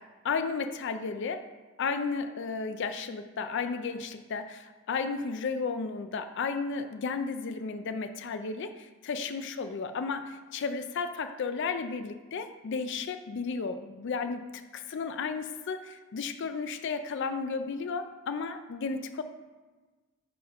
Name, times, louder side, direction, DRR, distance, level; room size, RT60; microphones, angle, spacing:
voice 1, 0.2-1.4 1.8-14.4 14.7-19.2, left 4 dB, 60° left, 9 dB, 0.4 m, -33 dB
5.0 x 4.7 x 5.0 m, 1.3 s
head